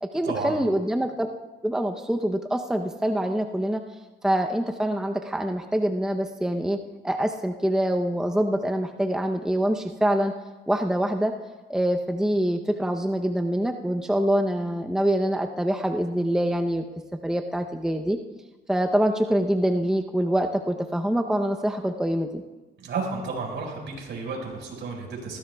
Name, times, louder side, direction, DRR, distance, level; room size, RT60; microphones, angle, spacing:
voice 1, 0.0-1.3 1.6-3.8 4.2-10.3 10.7-11.3 11.7-16.8 17.2-18.2 18.7-22.4, right 1 dB, 5° right, 4 dB, 0.7 m, -25 dB
voice 2, 22.8-25.4, right 4 dB, 65° right, 0 dB, 4.9 m, -32 dB
19.5 x 16.0 x 2.3 m, 1.2 s
cardioid pair, 90°, 20 cm